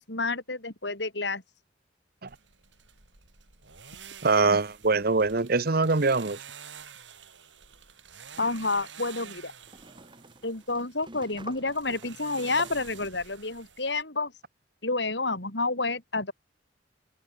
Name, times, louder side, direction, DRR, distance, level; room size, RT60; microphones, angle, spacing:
voice 1, 0.0-1.4 8.4-9.5 10.4-14.3 14.8-16.3, left 3 dB, 70° left, 5.3 m, -29 dB
sound 1, 2.3-14.0, right 7 dB, 85° right, 6.9 m, -49 dB
voice 2, 4.2-6.4, right 3 dB, 55° right, 1.1 m, -23 dB
sound 2, 7.7-7.8 9.7-13.0, right 2 dB, 25° right, 7.8 m, -49 dB
head